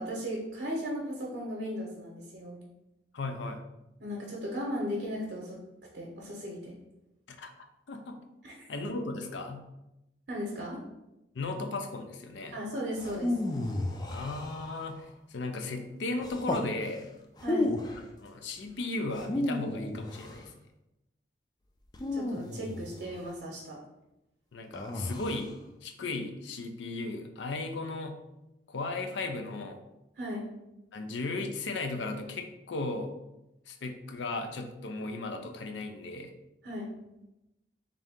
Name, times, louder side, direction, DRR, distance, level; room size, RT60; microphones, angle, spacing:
voice 1, 0.0-2.6 4.0-5.6 5.9-6.8 8.4-8.7 10.3-10.8 12.5-13.4 17.4-17.7 22.1-23.8 30.2-30.4 36.6-36.9, equal, 70° right, -3 dB, 0.8 m, -36 dB
voice 2, 3.1-3.6 7.4-7.5 7.9-8.2 8.7-9.7 11.3-12.6 14.1-17.1 18.2-20.5 24.5-28.2 28.7-29.8 30.9-33.1 33.7-36.3, left 2 dB, 85° left, 6 dB, 0.5 m, -36 dB
sound 1, 13.0-15.0 16.2-16.7 17.4-18.1 19.1-20.5 21.9-23.2 24.7-25.5, left 2 dB, 20° left, 0.3 m, -33 dB
3.7 x 2.7 x 3.5 m, 0.92 s
head